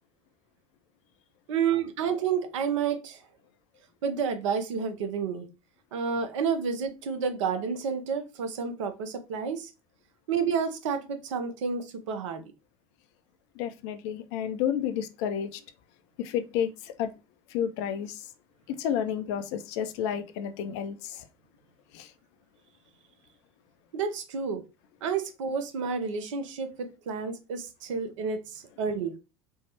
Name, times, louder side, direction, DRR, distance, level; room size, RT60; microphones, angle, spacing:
voice 1, 1.5-3.2 4.0-5.5 5.9-9.7 10.3-12.4 23.9-24.6 25.0-29.2, right 6 dB, 70° right, 0.6 m, -30 dB
voice 2, 13.6-15.6 16.2-17.1 17.5-18.3 18.7-21.3 21.9-22.1, left 9 dB, 60° left, 0.5 m, -31 dB
3.3 x 2.0 x 2.8 m
figure-of-eight pair, 75°, 17 cm